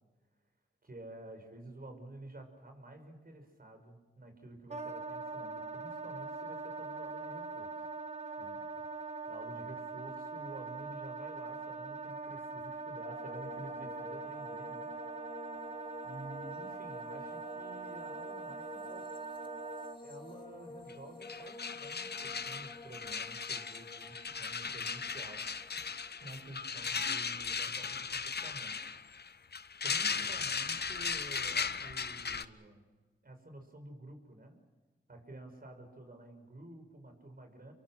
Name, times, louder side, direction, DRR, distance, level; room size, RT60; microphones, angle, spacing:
voice 1, 0.8-7.7 8.4-14.9 15.3-15.6 16.0-19.1 20.0-25.4 26.2-28.8 29.8-33.0 33.2-34.6 35.1-37.7, right 1 dB, 50° right, 5 dB, 6.3 m, -51 dB
Wind instrument woodwind instrument, 4.7-20.0, right 4 dB, 35° right, 1.4 m, -42 dB
sound 1, 13.0-28.3 28.5-29.2, left 2 dB, 25° left, 3.3 m, -51 dB
sound 2, 20.9-21.0 21.2-32.4, left 5 dB, 55° left, 1.0 m, -37 dB
26.5 x 23.5 x 6.2 m, 1.3 s
cardioid pair, 50°, 20 cm